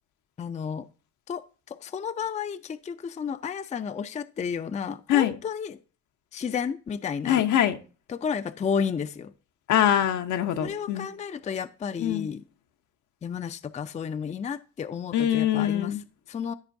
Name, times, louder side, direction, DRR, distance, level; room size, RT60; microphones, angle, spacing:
voice 1, 0.4-0.9 1.3-5.8 6.3-7.4 8.1-9.3 10.6-12.4 13.2-15.9 16.3-16.5, left 7 dB, 25° left, 0.4 m, -32 dB
voice 2, 7.3-7.8 9.7-11.1 12.0-12.3 15.1-16.0, left 11 dB, 75° left, 0.8 m, -23 dB
13.5 x 5.1 x 2.6 m
cardioid pair, 90°, 30 cm